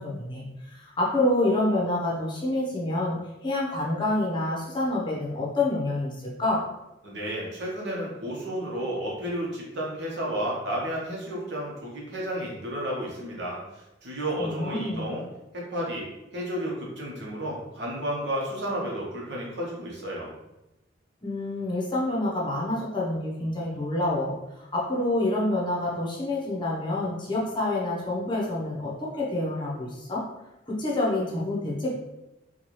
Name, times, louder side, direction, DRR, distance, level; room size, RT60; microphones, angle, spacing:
voice 1, 0.0-6.6 14.4-15.1 21.2-30.2 30.7-32.0, left 1 dB, 25° left, -4 dB, 0.7 m, -27 dB
voice 2, 7.0-15.2 15.5-16.0 16.3-20.3, equal, 60° right, -3 dB, 1.1 m, -32 dB
4.5 x 2.3 x 3.0 m, 0.94 s
head